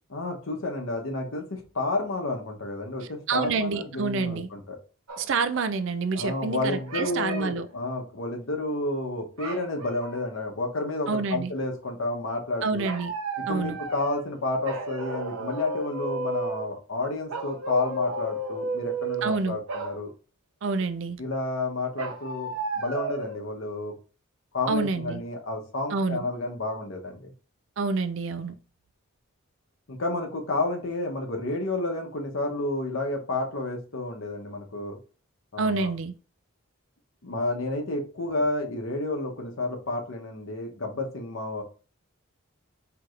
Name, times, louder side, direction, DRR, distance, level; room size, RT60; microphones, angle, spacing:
voice 1, 0.1-4.8 6.1-12.9 13.5-20.1 21.2-23.9 24.5-27.3 29.9-35.0 35.5-35.9 37.2-41.6, left 2 dB, 65° left, 0.9 m, -30 dB
voice 2, 3.3-4.5 5.2-7.7 11.1-11.5 12.6-13.1 13.5-13.8 19.2-19.6 20.6-21.2 24.7-25.2 25.9-26.3 27.8-28.5 35.6-36.1, right 4 dB, 60° right, 0.4 m, -27 dB
sound 1, 5.1-5.3 6.6-7.6 9.4-10.3 12.8-14.3 14.6-16.7 17.3-19.4 19.7-20.0 22.0-23.4, right 3 dB, 90° right, 0.8 m, -33 dB
4.6 x 2.9 x 2.4 m
head